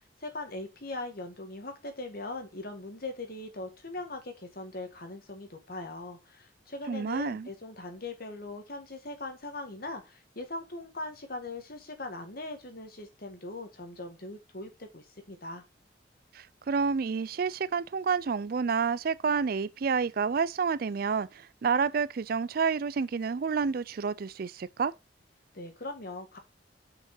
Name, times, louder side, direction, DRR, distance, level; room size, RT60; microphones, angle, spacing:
voice 1, 0.0-15.6 25.5-26.4, left 2 dB, 55° left, 1.9 m, -40 dB
voice 2, 6.9-7.5 16.3-24.9, right 5 dB, 55° right, 0.4 m, -29 dB
5.8 x 5.6 x 5.5 m
head